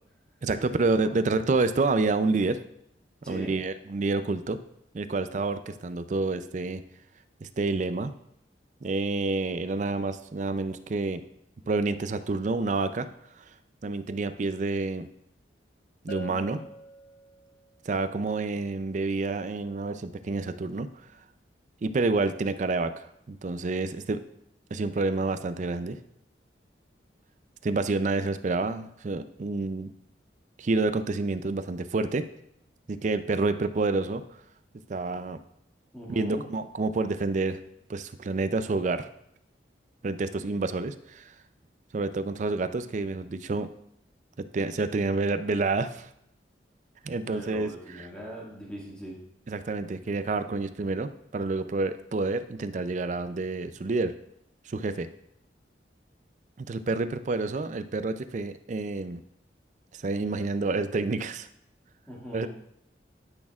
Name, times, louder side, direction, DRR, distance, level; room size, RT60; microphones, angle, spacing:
voice 1, 0.4-2.6 3.3-4.6 4.9-6.8 7.4-8.1 8.8-11.2 11.7-13.1 13.8-15.1 16.0-16.6 17.9-20.9 21.8-24.2 24.7-26.0 27.6-29.9 30.6-32.3 32.9-34.2 34.9-35.4 36.1-37.6 37.9-39.1 40.0-41.3 41.9-43.7 44.4-46.1 47.0-47.7 49.5-54.1 54.7-55.1 56.6-59.2 59.9-61.5 62.3-62.5, right 3 dB, 40° right, 11 dB, 0.4 m, -28 dB
voice 2, 3.2-3.5 16.3-16.6 35.9-36.4 47.2-49.2 62.1-62.5, equal, 5° left, -4 dB, 1.9 m, -40 dB
Bell, 16.1-17.7, right 1 dB, 55° left, 0.8 m, -43 dB
12.0 x 6.2 x 2.4 m, 0.76 s
head